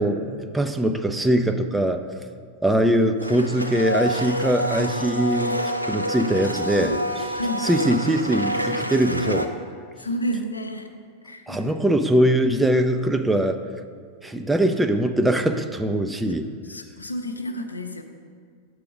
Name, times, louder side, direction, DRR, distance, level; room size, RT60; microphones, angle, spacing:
voice 1, 0.0-2.0 2.6-5.6 5.9-7.3 7.6-9.5 11.5-13.6 14.2-16.5, right 1 dB, 5° right, 6 dB, 0.4 m, -22 dB
Domestic sounds home sounds, 3.2-9.5, equal, 90° right, 0.4 m, -27 dB
voice 2, 7.3-7.6 10.0-10.9 11.2-11.8 16.3-18.0, equal, 80° left, 5 dB, 0.6 m, -31 dB
6.8 x 4.8 x 6.2 m, 2.1 s
figure-of-eight pair, 90°, 0 cm